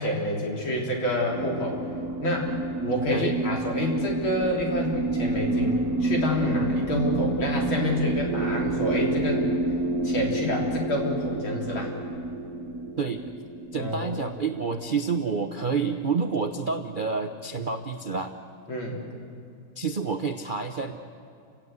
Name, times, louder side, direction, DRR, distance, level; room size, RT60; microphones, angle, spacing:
voice 1, 0.0-1.8 2.2-2.5 2.8-9.5 10.0-11.9 13.7-14.2 18.7-19.0, left 1 dB, 65° left, -1 dB, 4.4 m, -28 dB
sound 1, 1.3-15.9, right 2 dB, 45° right, 1.7 m, -29 dB
voice 2, 13.7-18.3 19.8-20.9, right 5 dB, 65° right, 6 dB, 0.5 m, -28 dB
29.5 x 17.0 x 8.2 m, 2.5 s
omnidirectional pair, 2.3 m